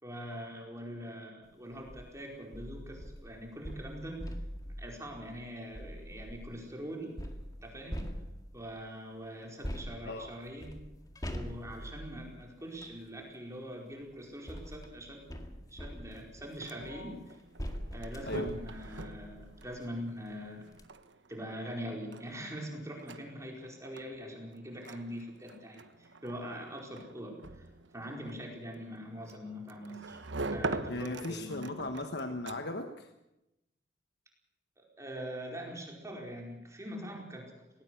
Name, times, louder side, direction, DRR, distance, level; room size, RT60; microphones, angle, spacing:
voice 1, 0.0-4.3 4.8-7.2 7.6-8.1 8.5-10.9 11.3-15.3 15.7-17.4 17.9-20.7 21.3-27.7 27.9-31.7 34.8-37.8, equal, 15° right, 0 dB, 4.8 m, -43 dB
sound 1, 1.7-2.1 2.5-6.6 7.2-8.7 9.6-13.0 13.9-19.9 20.3-20.4 20.7-20.8, equal, 20° left, 2.1 m, -43 dB
sound 2, 16.4-32.9, right 3 dB, 85° right, 1.2 m, -44 dB
voice 2, 16.8-17.2 18.2-18.5 30.9-33.1, left 1 dB, 65° left, 7 dB, 1.3 m, -37 dB
19.0 x 18.5 x 8.3 m, 0.91 s
head